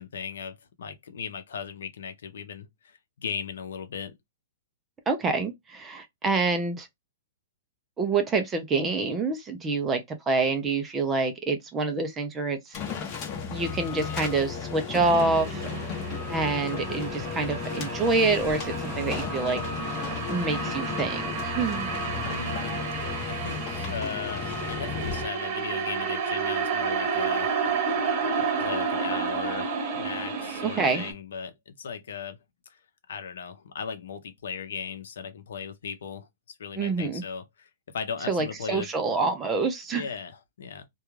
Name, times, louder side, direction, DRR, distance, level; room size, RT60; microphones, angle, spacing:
voice 1, 0.0-4.1 22.2-22.9 23.2-27.6 28.6-32.4 32.7-32.8 33.1-36.3 36.6-37.7 37.9-38.9 39.9-40.9, left 6 dB, 75° left, 0.7 m, -37 dB
voice 2, 5.1-6.9 8.0-12.8 13.5-15.7 16.3-19.6 20.3-21.9 30.6-31.0 36.8-37.2 38.3-40.1, right 3 dB, 15° right, 0.4 m, -27 dB
sound 1, 12.7-25.3, left 6 dB, 30° left, 0.8 m, -34 dB
sound 2, 15.0-31.1, right 5 dB, 35° right, 0.9 m, -31 dB
2.3 x 2.3 x 3.0 m
hypercardioid pair, 155°, 0 cm